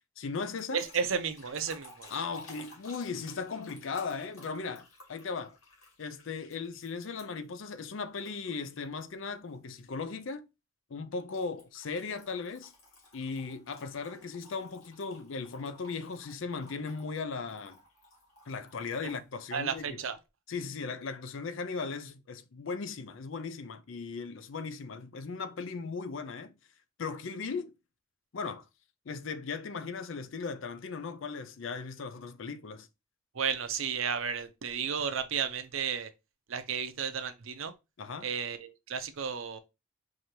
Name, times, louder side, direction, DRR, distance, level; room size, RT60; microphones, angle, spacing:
voice 1, 0.2-0.8 2.1-5.6 6.0-10.5 10.9-12.7 13.1-17.8 18.5-20.0 20.5-26.5 27.0-27.8 28.3-28.6 29.1-32.9 38.0-38.3, left 4 dB, 65° left, 0.5 m, -37 dB
sound 1, 0.6-7.5 8.2-9.0 9.5-9.8 11.3-19.3, left 2 dB, 80° left, 2.0 m, -56 dB
voice 2, 0.7-2.1 19.0-19.1 19.5-20.2 33.3-36.1 36.5-37.7 38.2-39.6, right 7 dB, 70° right, 0.6 m, -33 dB
4.8 x 2.7 x 2.8 m
head